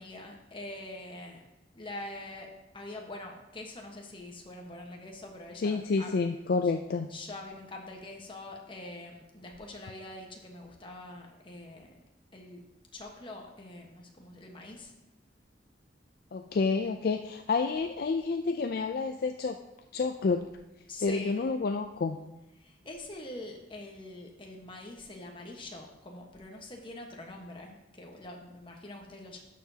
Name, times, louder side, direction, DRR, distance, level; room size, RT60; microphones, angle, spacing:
voice 1, 0.0-1.4 1.7-6.1 6.6-6.7 7.1-12.0 12.3-12.6 12.9-14.9 20.9-21.4 22.6-29.4, left 2 dB, 25° left, 1 dB, 1.2 m, -44 dB
voice 2, 5.6-7.1 16.3-19.6 19.9-20.5 21.0-22.2, left 4 dB, 55° left, 6 dB, 0.4 m, -29 dB
11.5 x 6.9 x 2.8 m, 1.0 s
head